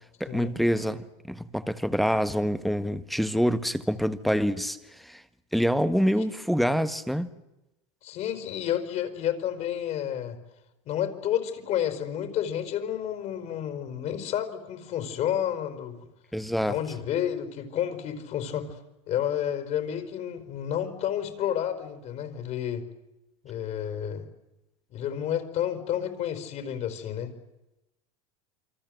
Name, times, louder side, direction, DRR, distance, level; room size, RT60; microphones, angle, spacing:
voice 1, 0.2-5.2 5.5-7.3 16.3-16.8, equal, ahead, 11 dB, 1.5 m, -26 dB
voice 2, 8.0-10.4 10.8-16.0 16.7-18.8 19.1-22.9 23.4-24.3 24.9-27.3, left 10 dB, 45° left, 10 dB, 5.1 m, -30 dB
28.0 x 24.5 x 7.9 m, 0.93 s
supercardioid pair, 120°, 16 cm